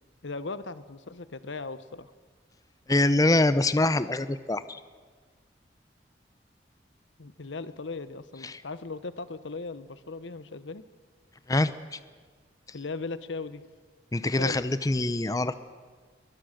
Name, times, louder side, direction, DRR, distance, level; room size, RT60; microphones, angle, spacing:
voice 1, 0.2-2.1 7.2-10.8 12.7-13.6 14.2-14.6 14.9-15.0, left 3 dB, 90° left, 14 dB, 1.0 m, -38 dB
voice 2, 2.9-4.8 8.4-8.5 11.5-12.0 14.1-15.5, left 2 dB, 20° left, 14 dB, 0.6 m, -24 dB
23.0 x 21.0 x 6.5 m, 1.5 s
head